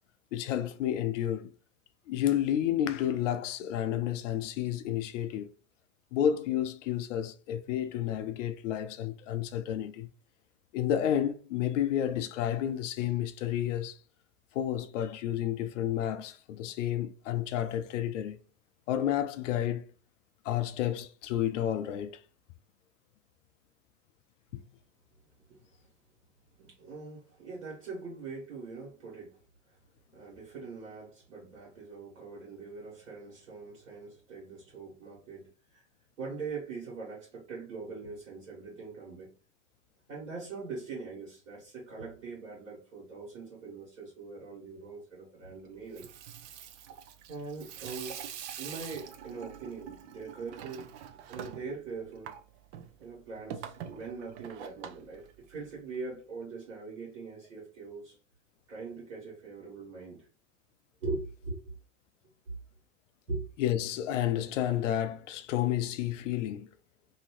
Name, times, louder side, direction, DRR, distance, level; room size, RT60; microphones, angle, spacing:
voice 1, 0.3-1.5 2.1-5.5 6.1-10.1 10.7-14.0 14.5-18.4 18.9-19.9 20.4-22.1 24.5-24.6 63.6-66.7, left 11 dB, 70° left, 0.5 m, -31 dB
voice 2, 26.6-29.4 29.7-29.8 30.1-35.8 36.2-39.3 40.1-46.1 47.3-48.2 48.6-52.3 53.0-58.1 58.7-60.3 61.0-61.6 63.3-63.5, right 4 dB, 80° right, 1.7 m, -42 dB
Water tap faucet / Sink (filling or washing), 45.8-56.0, right 9 dB, 60° right, 0.6 m, -45 dB
2.7 x 2.7 x 3.0 m
hypercardioid pair, 80°, 39 cm